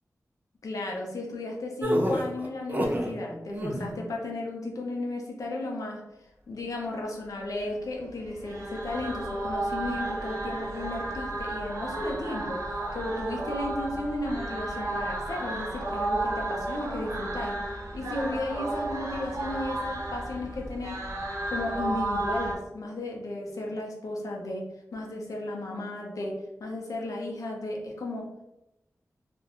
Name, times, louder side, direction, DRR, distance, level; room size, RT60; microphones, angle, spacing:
voice 1, 0.6-6.0 6.5-17.6 17.9-21.0 21.5-28.2, left 2 dB, 85° left, 0 dB, 0.5 m, -34 dB
sound 1, 1.8-3.1 3.5-4.0, equal, 30° right, 0.4 m, -27 dB
sound 2, 8.2-22.5, right 2 dB, 65° right, 1.0 m, -33 dB
2.4 x 2.1 x 2.9 m, 0.92 s
wide cardioid pair, 100°, 6 cm